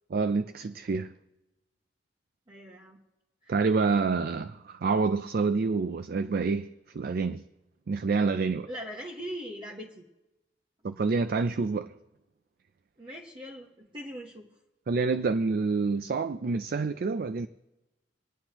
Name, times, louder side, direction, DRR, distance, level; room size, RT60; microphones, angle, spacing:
voice 1, 0.1-1.1 3.5-6.7 6.9-7.4 7.9-8.7 10.8-11.9 14.9-17.5, right 4 dB, 60° right, 0.4 m, -27 dB
voice 2, 2.5-3.0 3.4-3.6 8.7-10.1 13.0-14.5, equal, 30° right, 1.1 m, -41 dB
26.5 x 9.7 x 3.0 m
head